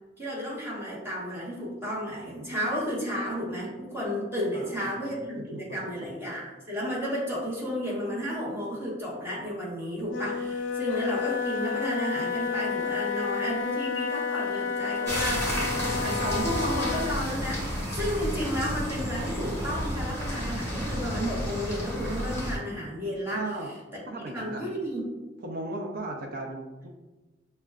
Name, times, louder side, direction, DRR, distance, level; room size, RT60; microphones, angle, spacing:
voice 1, 0.2-23.5 24.3-25.0, equal, 15° right, -6 dB, 1.1 m, -32 dB
voice 2, 4.5-5.9 23.3-23.7 24.1-24.6 25.4-26.9, right 2 dB, 55° right, -1 dB, 0.4 m, -37 dB
Wind instrument woodwind instrument, 10.1-17.3, left 5 dB, 90° left, 0.4 m, -31 dB
sound 1, 15.1-22.6, equal, 15° left, 1.0 m, -31 dB
6.0 x 2.1 x 2.3 m, 1.1 s
head